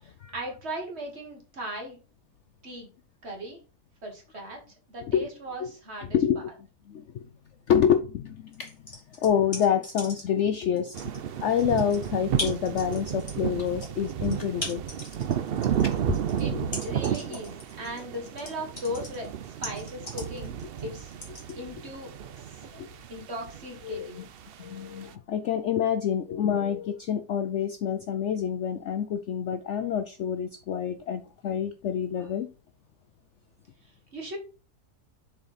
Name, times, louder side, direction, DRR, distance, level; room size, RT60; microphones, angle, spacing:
voice 1, 0.0-2.0 2.6-2.9 3.2-3.6 4.0-6.2 16.4-16.6 16.8-21.1 21.5-22.1 22.4-22.6 23.1-24.2 34.1-34.4, equal, 45° right, 2.0 m, -38 dB
voice 2, 6.1-6.4 6.9-7.3 7.7-8.8 9.2-11.0 11.4-14.8 15.8-16.2 16.5-16.7 21.5-21.6 22.7-22.9 23.8-24.2 24.6-32.5, left 8 dB, 65° left, 0.7 m, -27 dB
sound 1, 8.5-10.4 10.8-21.5, left 1 dB, 20° left, 2.6 m, -39 dB
sound 2, 10.9-25.1, right 9 dB, 75° right, 0.5 m, -33 dB
7.1 x 4.4 x 4.1 m
omnidirectional pair, 1.7 m